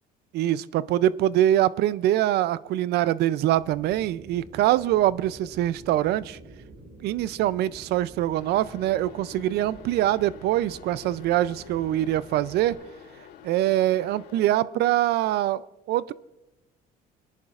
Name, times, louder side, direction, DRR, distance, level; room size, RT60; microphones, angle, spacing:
voice 1, 0.3-6.4 7.0-12.8 13.4-16.1, right 13 dB, 75° right, 18 dB, 0.4 m, -24 dB
sound 1, 3.6-12.7, right 2 dB, 50° right, 5.1 m, -47 dB
sound 2, 8.4-14.6, left 8 dB, 80° left, 1.1 m, -48 dB
24.0 x 10.5 x 2.4 m, 0.95 s
cardioid pair, 110°, 17 cm